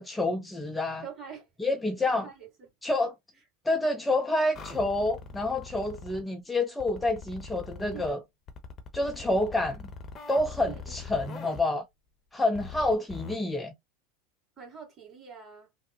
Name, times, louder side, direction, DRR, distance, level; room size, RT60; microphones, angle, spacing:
voice 1, 0.0-1.0 1.6-2.3 2.8-3.1 3.7-8.2 8.9-9.9 10.3-11.8 12.3-13.7, left 2 dB, 10° left, 0.5 m, -28 dB
voice 2, 1.0-1.5 2.1-2.7 7.9-8.3 10.6-11.2 12.8-12.9 14.6-15.7, right 7 dB, 30° right, 2.1 m, -45 dB
sound 1, 4.5-6.2 6.8-8.1 8.5-11.6 12.5-13.4, left 4 dB, 30° left, 0.8 m, -42 dB
3.3 x 2.1 x 2.9 m
hypercardioid pair, 85°, 0 cm